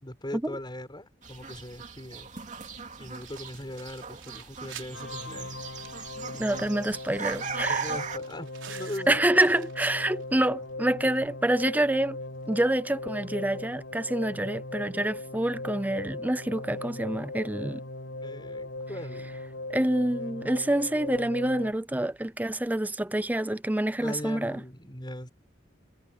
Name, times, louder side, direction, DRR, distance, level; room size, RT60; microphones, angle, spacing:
voice 1, 0.0-2.3 3.0-5.7 6.3-6.4 7.7-9.4 18.2-19.4 24.0-25.3, left 1 dB, 25° left, 4.8 m, -40 dB
sound 1, 1.2-8.2, right 5 dB, 40° right, 2.8 m, -38 dB
sound 2, 3.1-10.4 10.7-10.8 11.2-11.3 12.5-12.6, right 10 dB, 85° right, 4.2 m, -50 dB
sound 3, 4.9-21.7, left 2 dB, 80° left, 5.8 m, -39 dB
voice 2, 6.4-7.9 9.1-12.2 12.5-17.8 19.7-24.6, right 1 dB, 10° right, 0.5 m, -27 dB
head